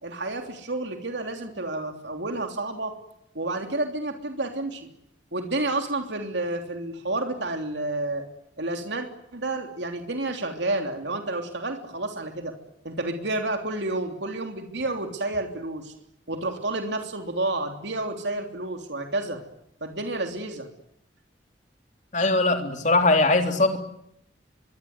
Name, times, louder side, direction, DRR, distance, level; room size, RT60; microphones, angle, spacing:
voice 1, 0.0-2.9 3.3-4.9 5.3-8.2 8.6-9.1 9.3-12.5 12.8-15.9 16.3-19.4 19.8-20.7, right 2 dB, 70° right, 5 dB, 3.3 m, -30 dB
voice 2, 22.1-23.8, left 2 dB, 40° left, 6 dB, 3.4 m, -21 dB
24.0 x 23.5 x 9.7 m, 0.75 s
head